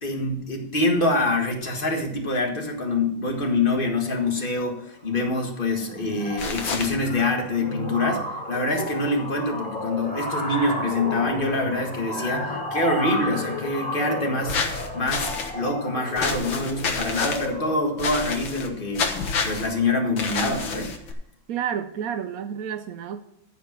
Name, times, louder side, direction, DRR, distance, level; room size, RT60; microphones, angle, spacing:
voice 1, 0.0-14.6 14.9-19.1 19.4-20.9, left 2 dB, 30° left, 2 dB, 1.6 m, -25 dB
sound 1, 4.2-4.3 4.6-4.8 5.1-20.0, left 1 dB, 5° left, 1.8 m, -33 dB
sound 2, 6.4-6.9 14.5-15.5 16.2-17.5 18.0-18.7 18.9-19.7 20.2-21.1, left 5 dB, 90° left, 2.2 m, -28 dB
voice 2, 21.5-23.2, right 8 dB, 70° right, 10 dB, 0.8 m, -30 dB
14.0 x 5.1 x 6.0 m, 0.75 s
omnidirectional pair, 2.1 m